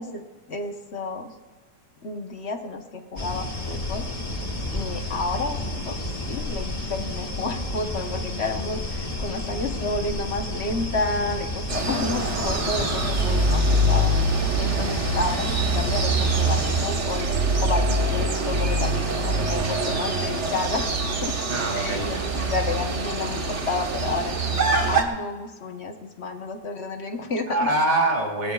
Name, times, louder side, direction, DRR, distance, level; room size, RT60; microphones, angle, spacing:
voice 1, 0.0-1.3 2.0-4.1 4.7-17.3 17.6-20.9 21.2-21.4 21.7-22.2 22.5-27.7, left 3 dB, 40° left, 5 dB, 1.2 m, -31 dB
sound 1, 3.2-16.8, left 1 dB, 25° left, 1.2 m, -31 dB
sound 2, 11.7-25.0, right 2 dB, 40° right, 1.5 m, -24 dB
voice 2, 21.5-22.5 27.5-28.5, right 2 dB, 25° right, 1 dB, 2.4 m, -25 dB
20.0 x 18.5 x 2.4 m, 1.3 s
omnidirectional pair, 2.0 m